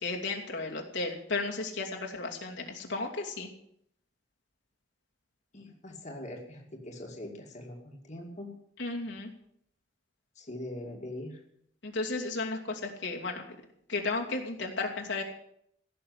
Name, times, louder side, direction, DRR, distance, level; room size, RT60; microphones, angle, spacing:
voice 1, 0.0-3.5 8.8-9.3 11.8-13.5 13.9-15.2, left 3 dB, 75° left, -1 dB, 2.7 m, -34 dB
voice 2, 5.5-8.5 10.4-11.4, left 1 dB, 40° left, 0 dB, 2.3 m, -42 dB
16.5 x 6.8 x 9.5 m, 0.71 s
head